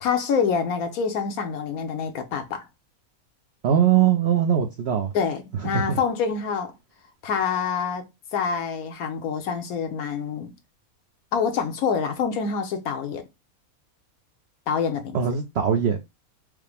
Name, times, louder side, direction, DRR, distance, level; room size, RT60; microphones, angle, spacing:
voice 1, 0.0-2.7 5.1-6.7 7.2-8.1 8.3-10.5 11.3-13.2 14.7-15.2, left 6 dB, 75° left, 1.3 m, -26 dB
voice 2, 3.6-5.1 5.6-6.0 15.1-16.0, right 9 dB, 60° right, 0.7 m, -21 dB
4.8 x 2.1 x 3.3 m
omnidirectional pair, 1.5 m